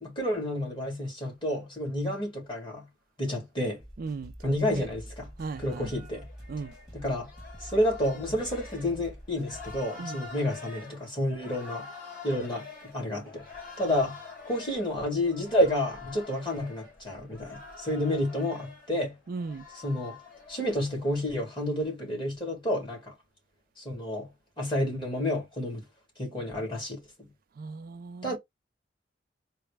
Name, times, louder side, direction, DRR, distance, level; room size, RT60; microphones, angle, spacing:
voice 1, 0.0-2.8 3.2-3.8 4.4-5.3 5.6-6.3 6.9-7.3 7.6-11.9 12.2-12.7 12.9-13.4 13.8-14.2 14.5-19.1 19.8-20.2 20.5-23.1 23.8-24.3 24.6-25.8 26.2-27.3 28.2-28.4, left 1 dB, 30° left, 1.8 m, -30 dB
sound 1, 3.8-9.8, equal, 5° right, 1.1 m, -46 dB
voice 2, 4.0-4.9 5.4-5.9 6.5-6.7 10.0-10.2 13.9-14.1 19.3-19.7 27.6-28.4, right 4 dB, 50° right, 0.4 m, -37 dB
sound 2, 5.5-21.3, left 4 dB, 50° left, 1.9 m, -47 dB
4.0 x 2.1 x 3.3 m
head